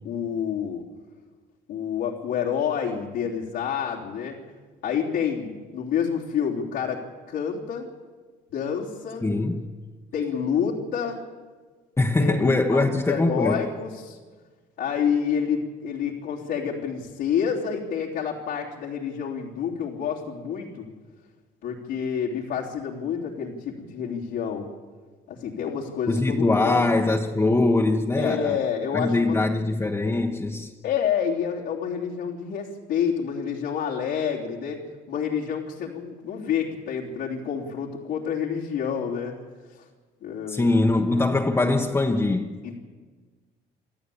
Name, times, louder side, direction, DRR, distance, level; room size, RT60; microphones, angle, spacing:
voice 1, 0.0-0.8 1.7-4.4 4.8-7.9 8.5-9.3 10.1-11.2 12.2-14.2 14.8-20.9 21.6-24.7 25.3-26.8 28.2-29.4 30.8-39.3 39.7-39.8 40.2-40.7 42.6-42.8, left 7 dB, 80° left, 3.2 m, -28 dB
voice 2, 9.2-9.7 12.0-13.7 26.1-28.6 28.9-30.7 40.5-42.6, left 2 dB, 15° left, 1.3 m, -22 dB
27.5 x 13.5 x 8.6 m
cardioid pair, 110°, 17 cm